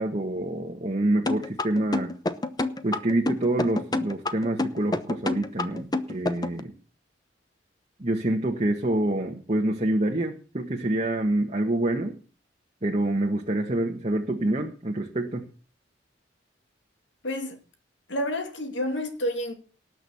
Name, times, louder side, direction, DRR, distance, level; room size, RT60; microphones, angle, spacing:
voice 1, 0.0-2.1 2.8-6.7 8.0-12.1 12.8-15.4, right 1 dB, 35° right, 1.5 m, -26 dB
sound 1, 1.3-6.6, left 2 dB, 20° left, 0.9 m, -27 dB
voice 2, 17.2-17.6 18.1-19.5, left 1 dB, 90° left, 2.7 m, -29 dB
18.5 x 6.3 x 7.1 m
head